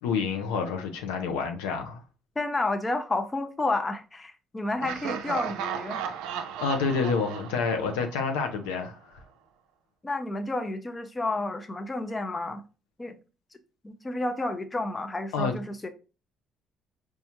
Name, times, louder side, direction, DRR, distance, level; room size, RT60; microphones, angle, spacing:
voice 1, 0.0-2.0 6.6-9.2 15.3-15.5, left 5 dB, 90° left, 0.5 m, -28 dB
voice 2, 2.4-6.0 10.0-12.6 13.0-13.1 13.8-15.9, left 2 dB, 25° left, 0.6 m, -30 dB
Laughter, 4.8-8.7, right 8 dB, 80° right, 0.4 m, -35 dB
4.2 x 2.3 x 2.9 m
supercardioid pair, 60°, 0 cm